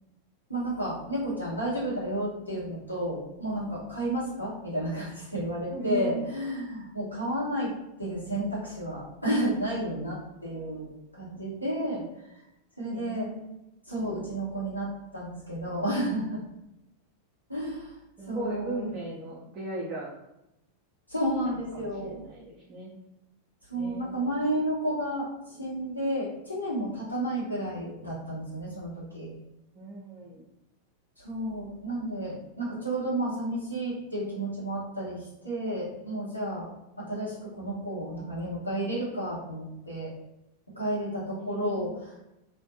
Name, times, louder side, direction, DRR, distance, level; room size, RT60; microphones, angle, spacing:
voice 1, 0.5-7.7 8.0-12.0 12.8-13.3 13.9-16.4 17.5-17.9 18.3-18.8 21.1-22.2 23.7-29.4 31.2-36.7 37.0-40.1 40.8-42.1, right 1 dB, 85° left, -7 dB, 1.0 m, -31 dB
voice 2, 5.7-6.2 12.9-13.5 18.2-20.1 21.4-22.9 23.7-24.4 29.7-30.4 41.4-42.0, right 2 dB, 30° right, -7 dB, 0.6 m, -37 dB
2.5 x 2.2 x 2.6 m, 0.88 s
figure-of-eight pair, 90°, 0 cm